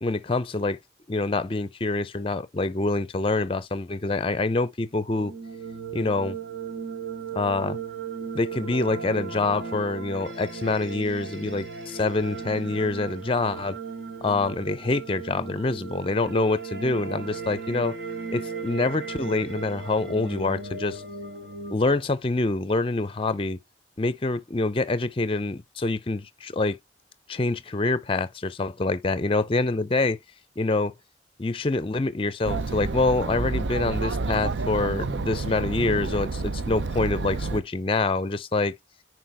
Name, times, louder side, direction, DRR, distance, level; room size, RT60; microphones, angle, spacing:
voice 1, 0.0-0.8 1.1-5.3 5.9-6.4 7.3-7.8 8.3-13.8 14.2-18.0 18.3-21.0 21.7-23.6 24.0-26.8 27.3-30.2 30.6-30.9 31.4-38.7, left 3 dB, 30° left, 0.5 m, -26 dB
sound 1, 4.9-21.7, right 5 dB, 70° right, 2.0 m, -36 dB
Chatter, 32.4-37.6, right 3 dB, 85° right, 0.5 m, -29 dB
10.0 x 4.5 x 3.4 m
head